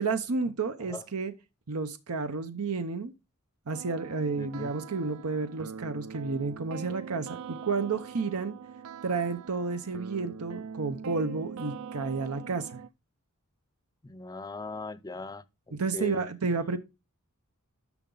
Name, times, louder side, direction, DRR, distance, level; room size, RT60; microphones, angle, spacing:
voice 1, 0.0-1.3 1.7-3.1 3.7-8.5 9.0-12.8 15.8-16.8, right 4 dB, 90° right, 0.8 m, -31 dB
sound 1, 3.7-12.9, right 6 dB, 70° right, 0.4 m, -43 dB
voice 2, 4.4-4.7 14.0-16.2 16.7-16.8, left 3 dB, 15° left, 0.4 m, -40 dB
10.5 x 6.0 x 3.8 m
head